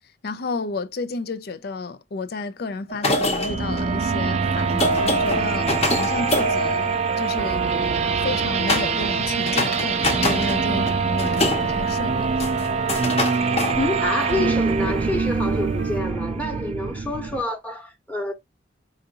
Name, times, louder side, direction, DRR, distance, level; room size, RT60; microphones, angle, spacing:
voice 1, 0.2-7.7 8.2-12.5, left 3 dB, 55° left, 0.5 m, -32 dB
sound 1, 2.9-7.6 8.7-9.1 9.4-10.6 10.9-14.4, left 1 dB, 35° left, 0.9 m, -26 dB
sound 2, 3.4-17.4, right 5 dB, 35° right, 0.4 m, -24 dB
sound 3, 4.4-16.0, right 3 dB, 60° right, 0.7 m, -36 dB
voice 2, 13.7-18.3, left 1 dB, 10° left, 1.0 m, -27 dB
4.9 x 2.5 x 2.9 m
head